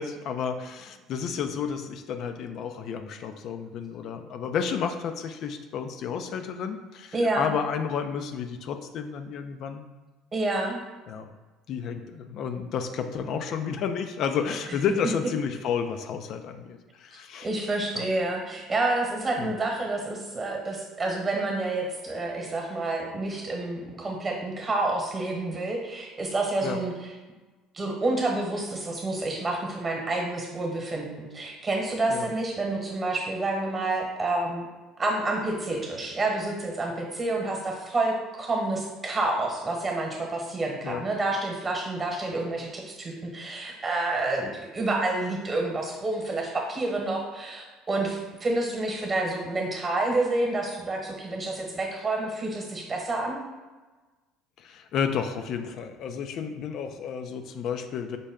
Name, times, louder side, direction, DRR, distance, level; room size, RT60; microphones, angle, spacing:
voice 1, 0.0-9.9 11.1-11.3 11.7-17.5 17.9-18.1 19.4-19.5 26.6-26.8 32.1-32.3 40.8-41.1 54.6-58.2, left 7 dB, 60° left, 8 dB, 0.4 m, -31 dB
voice 2, 7.1-7.5 10.3-10.8 17.4-26.9 27.7-34.7 35.0-53.4, right 2 dB, 25° right, 0 dB, 1.1 m, -29 dB
5.3 x 2.2 x 3.5 m, 1.2 s
supercardioid pair, 90°, 0 cm